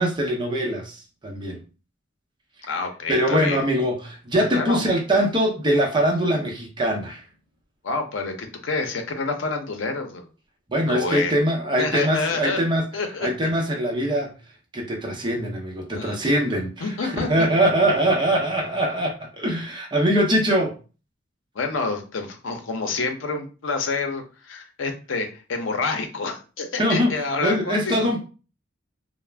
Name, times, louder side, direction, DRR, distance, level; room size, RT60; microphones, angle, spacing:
voice 1, 0.0-1.6 3.1-7.2 10.7-12.9 13.2-14.3 14.7-20.8 26.8-28.2, equal, 25° right, 0.6 m, -22 dB
voice 2, 2.7-3.6 4.5-4.8 7.8-10.3 10.9-11.3 11.8-12.6 12.9-13.3 15.9-16.2 16.8-17.5 21.5-28.1, left 3 dB, 90° left, 0.6 m, -28 dB
2.4 x 2.0 x 3.2 m
head